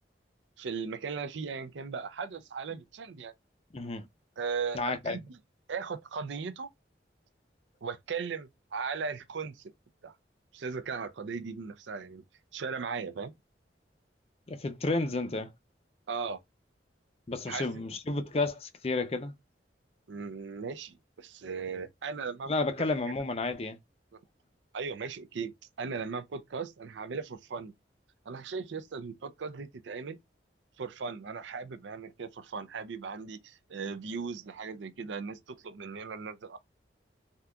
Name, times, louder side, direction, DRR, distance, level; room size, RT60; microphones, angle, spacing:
voice 1, 0.6-3.3 4.4-5.4 5.7-6.7 7.8-9.7 10.0-10.1 10.5-12.2 12.5-13.3 16.1-16.4 17.5-17.8 20.1-22.5 22.8-22.9 24.1-24.2 24.7-27.7 28.3-30.2 30.8-36.6, right 5 dB, 80° right, 0.5 m, -37 dB
voice 2, 3.7-4.1 4.7-5.2 14.5-15.5 17.3-19.3 22.5-23.8, left 3 dB, 30° left, 0.5 m, -31 dB
3.6 x 2.8 x 2.2 m
head